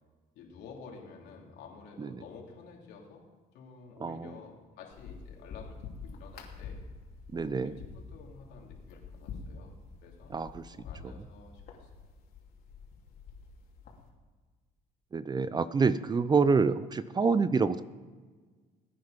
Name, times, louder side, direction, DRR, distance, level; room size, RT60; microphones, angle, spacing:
voice 1, 0.3-3.2 3.5-5.8 6.0-6.8 7.3-10.4 10.7-11.9, left 5 dB, 85° left, -1 dB, 3.3 m, -51 dB
voice 2, 4.0-4.3 7.3-7.7 10.3-10.8 15.1-17.8, right 4 dB, 25° right, 15 dB, 0.6 m, -27 dB
sound 1, 4.9-14.1, left 5 dB, 65° left, 3.1 m, -47 dB
20.0 x 9.5 x 5.2 m, 1.4 s
cardioid pair, 110°, 17 cm